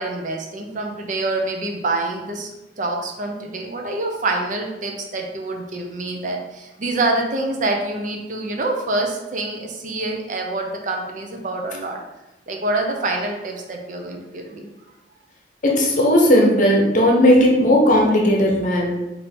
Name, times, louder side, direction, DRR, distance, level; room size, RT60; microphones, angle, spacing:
voice 1, 0.0-2.5 2.8-12.0 12.5-14.7, right 2 dB, 45° right, 2 dB, 0.5 m, -26 dB
voice 2, 15.6-19.0, left 1 dB, 45° left, -1 dB, 0.9 m, -16 dB
3.5 x 2.6 x 4.3 m, 0.98 s
head